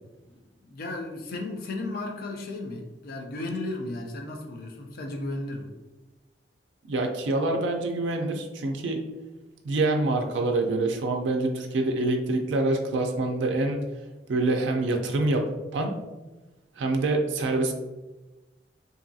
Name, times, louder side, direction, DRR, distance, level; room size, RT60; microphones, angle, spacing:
voice 1, 0.3-5.7, left 2 dB, 55° left, 2 dB, 0.5 m, -35 dB
voice 2, 6.9-9.0 9.6-13.8 14.3-15.5 15.7-15.9 16.8-17.7, right 2 dB, 85° right, 3 dB, 0.4 m, -26 dB
2.7 x 2.3 x 2.6 m, 1.1 s
head